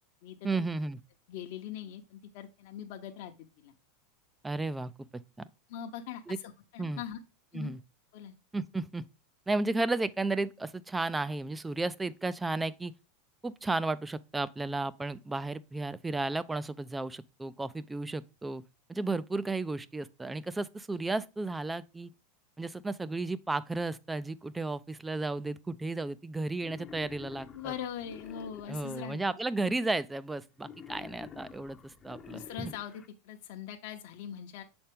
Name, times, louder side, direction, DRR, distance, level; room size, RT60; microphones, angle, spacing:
voice 1, 0.4-1.0 4.4-5.5 6.3-6.4 6.8-7.0 7.5-7.8 8.5-9.1 9.5-12.9 13.4-18.6 18.9-22.1 22.6-27.7 28.7-32.7, right 2 dB, 10° right, 0.3 m, -33 dB
voice 2, 1.3-3.7 5.7-6.2 6.7-7.2 7.5-7.7 8.1-8.3 27.5-29.2 32.3-34.6, left 9 dB, 60° left, 0.8 m, -41 dB
Wild animals, 26.6-29.1 30.6-33.1, left 6 dB, 25° left, 0.6 m, -49 dB
6.6 x 4.3 x 3.4 m
supercardioid pair, 135°, 0 cm